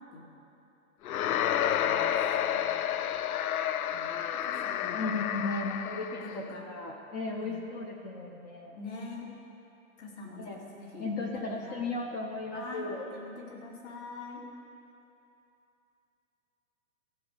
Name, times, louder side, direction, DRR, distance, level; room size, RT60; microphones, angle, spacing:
sound 1, 1.0-6.4, left 10 dB, 80° left, 0.5 m, -30 dB
voice 1, 1.3-2.7 3.8-5.1 6.0-6.7 7.3-7.6 8.7-9.3 10.0-11.8 12.5-14.4, left 3 dB, 50° left, -2 dB, 2.4 m, -45 dB
voice 2, 4.9-8.8 10.4-10.7 11.0-13.1, left 3 dB, 25° left, 1 dB, 0.7 m, -36 dB
14.5 x 4.9 x 6.6 m, 2.8 s
hypercardioid pair, 130°, 43 cm